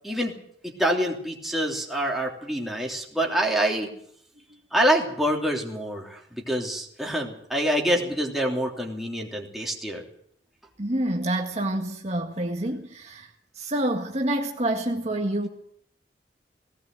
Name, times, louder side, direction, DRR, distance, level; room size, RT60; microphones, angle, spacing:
voice 1, 0.0-3.9 4.7-10.0, equal, ahead, -1 dB, 3.2 m, -26 dB
voice 2, 10.8-15.5, right 1 dB, 35° right, 2 dB, 1.8 m, -27 dB
18.5 x 18.0 x 7.8 m, 0.67 s
head